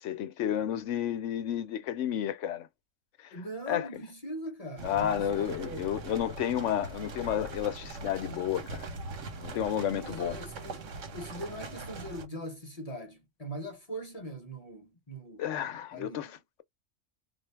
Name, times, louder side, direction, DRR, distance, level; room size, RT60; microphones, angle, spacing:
voice 1, 0.0-2.7 3.7-4.0 4.8-8.9 9.4-10.4 15.4-16.6, left 10 dB, 75° left, 1.0 m, -31 dB
voice 2, 3.3-5.9 9.9-10.8 11.1-15.4 15.9-16.3, equal, 35° left, 0.8 m, -41 dB
sound 1, 4.8-12.3, right 3 dB, 75° right, 1.4 m, -41 dB
3.9 x 2.7 x 3.2 m
omnidirectional pair, 1.3 m